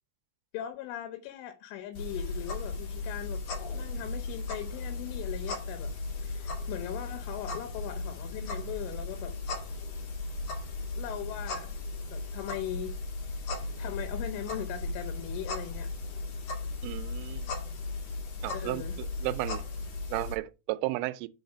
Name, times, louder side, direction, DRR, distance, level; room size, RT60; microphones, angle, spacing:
voice 1, 0.5-3.4 3.7-5.9 6.2-9.3 11.0-11.7 12.1-13.0 13.8-15.9 18.5-19.0, left 11 dB, 80° left, 3.3 m, -39 dB
sound 1, 1.9-20.3, left 3 dB, 55° left, 2.4 m, -36 dB
voice 2, 16.8-17.5 18.4-19.6 20.1-21.3, right 19 dB, 85° right, 3.1 m, -34 dB
6.4 x 4.8 x 5.3 m
omnidirectional pair, 5.7 m